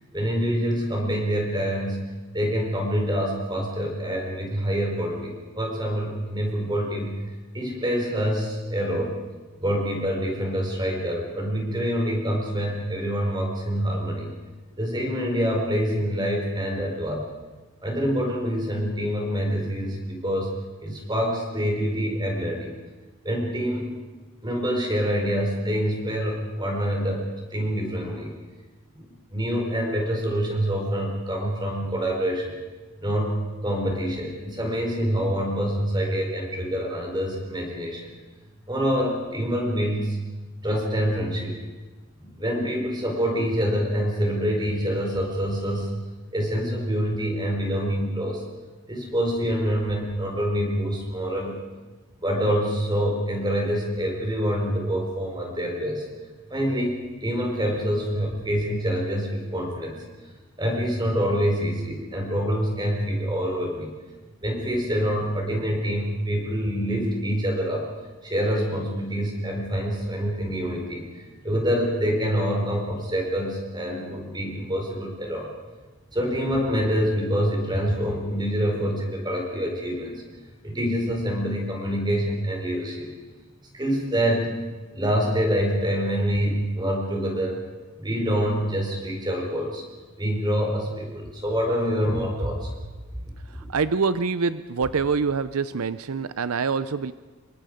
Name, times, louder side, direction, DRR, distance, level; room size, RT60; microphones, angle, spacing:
voice 1, 0.1-2.1 2.3-7.2 7.5-9.2 9.6-14.3 14.8-17.3 17.8-20.5 20.8-22.8 23.2-23.9 24.4-28.3 29.0-32.5 33.0-38.1 38.7-40.2 40.6-41.6 42.2-45.9 46.3-48.4 48.9-51.6 52.2-56.1 56.5-60.0 60.6-63.9 64.4-67.9 68.2-75.5 76.1-80.2 80.6-83.1 83.7-84.5 84.9-87.6 88.0-89.8 90.2-92.7 93.5-93.6, equal, 20° right, 1 dB, 4.6 m, -26 dB
voice 2, 93.7-97.1, right 5 dB, 80° right, 14 dB, 0.6 m, -25 dB
27.5 x 23.0 x 5.1 m, 1.3 s
head